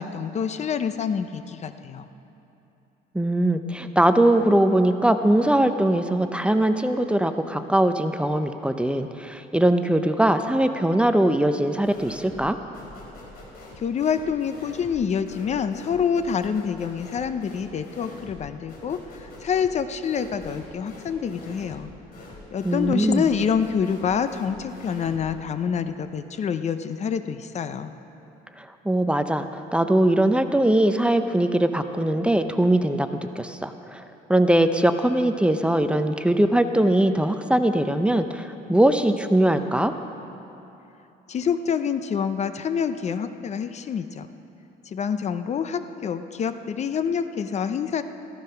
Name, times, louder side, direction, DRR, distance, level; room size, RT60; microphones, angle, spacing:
voice 1, 0.0-2.1 13.8-21.9 22.2-28.0 41.3-44.3 44.9-48.0, left 7 dB, 40° left, 10 dB, 0.6 m, -27 dB
voice 2, 3.1-12.6 22.6-23.3 28.6-33.1 33.4-34.0 34.3-39.9, right 1 dB, 5° right, 8 dB, 0.6 m, -21 dB
sound 1, 11.8-12.5 12.7-25.4, left 2 dB, 65° left, 4.1 m, -44 dB
15.0 x 14.0 x 5.7 m, 2.9 s
cardioid pair, 110°, 17 cm